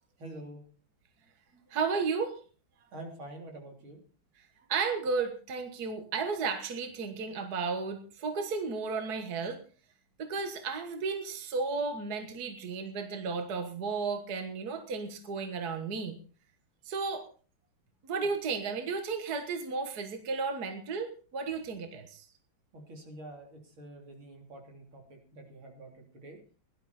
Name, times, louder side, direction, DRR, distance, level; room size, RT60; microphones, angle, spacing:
voice 1, 0.2-0.6 2.9-4.0 22.7-26.4, right 1 dB, 80° right, 1 dB, 4.3 m, -47 dB
voice 2, 1.7-2.4 4.7-9.6 10.2-16.2 16.9-17.3 18.0-22.3, right 4 dB, 50° right, 6 dB, 1.9 m, -33 dB
17.5 x 12.0 x 4.2 m, 0.39 s
omnidirectional pair, 2.2 m